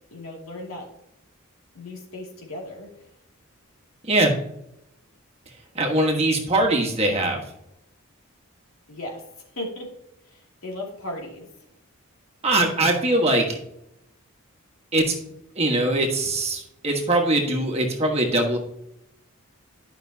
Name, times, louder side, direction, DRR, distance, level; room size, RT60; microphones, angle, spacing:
voice 1, 0.1-0.9 1.7-2.9 8.9-9.2 9.6-9.9 10.3-11.5, left 1 dB, 75° left, -1 dB, 2.5 m, -36 dB
voice 2, 5.7-7.4 12.4-13.6 14.9-15.2 15.5-18.6, right 1 dB, 30° right, 2 dB, 1.4 m, -22 dB
11.5 x 5.8 x 2.8 m, 0.80 s
head